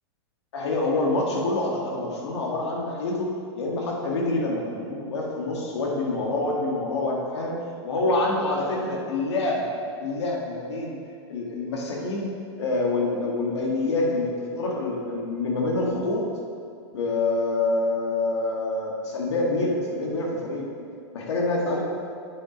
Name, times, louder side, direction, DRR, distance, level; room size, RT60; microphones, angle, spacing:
voice 1, 0.5-7.6 7.8-9.6 10.0-11.0 11.3-12.3 12.6-16.2 16.9-20.7 21.1-21.8, left 2 dB, 75° left, -2 dB, 1.7 m, -26 dB
8.4 x 5.4 x 5.1 m, 2.3 s
supercardioid pair, 155°, 14 cm